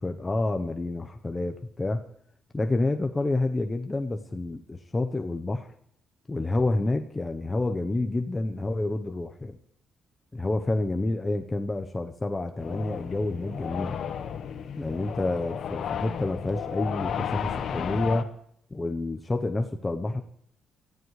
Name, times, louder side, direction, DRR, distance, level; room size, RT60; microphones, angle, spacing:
voice 1, 0.0-2.1 2.5-5.7 6.3-9.6 10.3-14.0 14.7-18.3 18.7-20.2, left 2 dB, 20° left, 5 dB, 0.9 m, -29 dB
sound 1, 12.6-18.2, left 8 dB, 65° left, 1.1 m, -33 dB
24.5 x 14.0 x 3.2 m, 0.69 s
cardioid pair, 90°, 0 cm